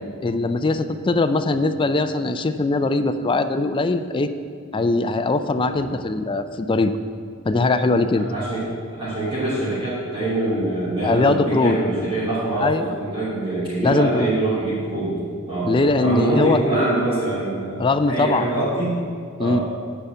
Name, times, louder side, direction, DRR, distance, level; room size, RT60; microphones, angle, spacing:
voice 1, 0.2-4.3 4.7-7.0 7.5-8.3 11.0-11.8 12.5-12.9 13.8-14.3 15.6-16.6 17.8-18.7 19.4-19.6, left 3 dB, 25° left, 10 dB, 0.3 m, -21 dB
voice 2, 8.3-15.1 15.5-15.7 16.0-19.0 19.4-19.6, right 2 dB, 25° right, -14 dB, 3.3 m, -24 dB
10.0 x 5.6 x 8.2 m, 2.2 s
head